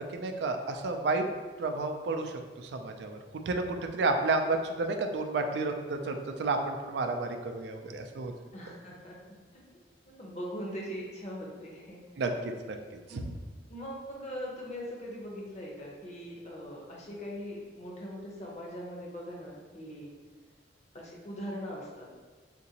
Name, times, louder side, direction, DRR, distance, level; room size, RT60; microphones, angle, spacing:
voice 1, 0.1-1.3 1.6-3.2 3.5-8.3 12.2-12.8, right 3 dB, 70° right, 5 dB, 0.3 m, -31 dB
voice 2, 8.5-9.4 10.0-12.0 13.1-20.1 20.9-22.3, equal, 40° left, -3 dB, 0.7 m, -41 dB
3.8 x 2.5 x 2.8 m, 1.4 s
head